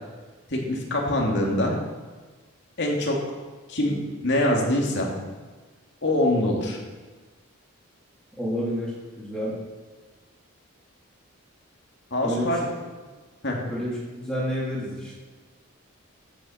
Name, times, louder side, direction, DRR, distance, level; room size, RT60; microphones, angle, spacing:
voice 1, 0.5-1.7 2.8-3.2 3.7-5.1 6.0-6.8 12.1-12.6 13.4-13.6, left 1 dB, 55° left, -1 dB, 2.6 m, -24 dB
voice 2, 8.4-9.6 12.2-12.6 13.6-15.2, equal, 5° left, -6 dB, 2.7 m, -29 dB
14.5 x 7.2 x 6.4 m, 1.3 s
head